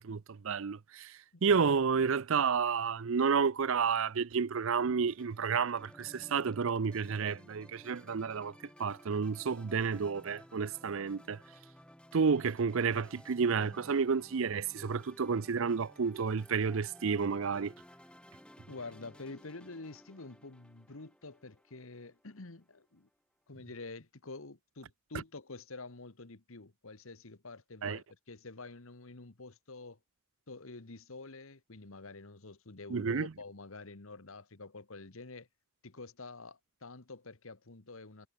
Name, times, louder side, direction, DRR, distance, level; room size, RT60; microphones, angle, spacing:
voice 1, 0.0-8.5 8.8-11.4 12.1-17.7 27.8-28.0 32.9-33.3, right 5 dB, 60° right, 0.5 m, -31 dB
sound 1, 5.1-22.5, equal, 5° left, 3.7 m, -56 dB
voice 2, 18.7-23.1 23.5-30.0 30.5-35.5 35.8-38.3, left 3 dB, 65° left, 1.4 m, -48 dB
head